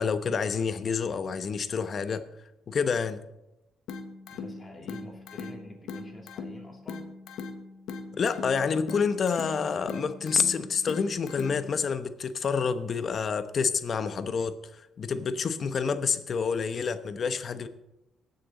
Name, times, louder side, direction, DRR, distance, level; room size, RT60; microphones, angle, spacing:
voice 1, 0.0-2.2 2.7-3.2 8.1-17.7, left 5 dB, 50° left, 0.8 m, -28 dB
sound 1, 3.9-11.9, left 4 dB, 80° left, 1.0 m, -40 dB
voice 2, 4.3-7.2, left 1 dB, 25° left, 2.8 m, -48 dB
19.0 x 6.7 x 4.1 m
cardioid pair, 90°, 0 cm